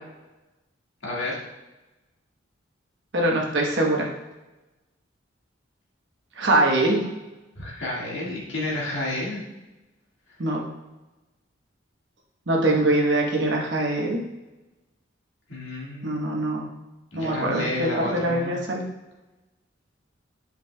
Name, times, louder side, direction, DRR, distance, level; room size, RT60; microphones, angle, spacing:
voice 1, 1.0-1.4 7.5-9.4 15.5-16.3 17.1-18.6, left 1 dB, 70° left, -4 dB, 1.8 m, -31 dB
voice 2, 3.1-4.1 6.4-7.0 10.4-10.6 12.5-14.2 16.0-16.7 17.1-18.8, right 1 dB, 65° right, -1 dB, 1.1 m, -23 dB
8.1 x 5.3 x 2.3 m, 1.1 s
head